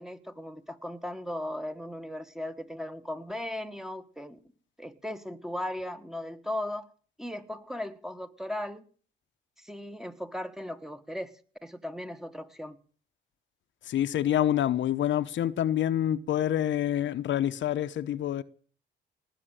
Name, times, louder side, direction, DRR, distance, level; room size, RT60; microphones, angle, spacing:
voice 1, 0.0-4.4 4.8-6.9 7.2-8.8 9.6-12.8, left 1 dB, ahead, 1.6 m, -37 dB
voice 2, 13.9-18.4, left 11 dB, 70° left, 1.0 m, -27 dB
19.0 x 7.8 x 9.1 m
cardioid pair, 90°, 20 cm